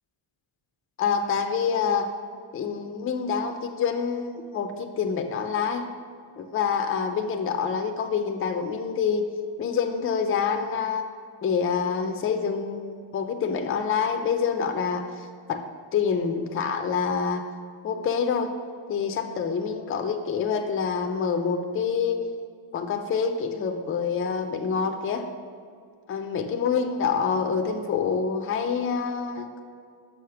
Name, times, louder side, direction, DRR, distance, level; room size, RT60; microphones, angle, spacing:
voice 1, 1.0-2.1 2.5-5.8 6.4-9.3 9.6-11.1 11.4-15.6 15.9-17.4 17.8-18.5 18.9-22.2 22.7-25.3 26.1-29.6, left 6 dB, 30° left, 6 dB, 0.4 m, -26 dB
6.2 x 5.0 x 5.7 m, 2.2 s
wide cardioid pair, 175°, 50 cm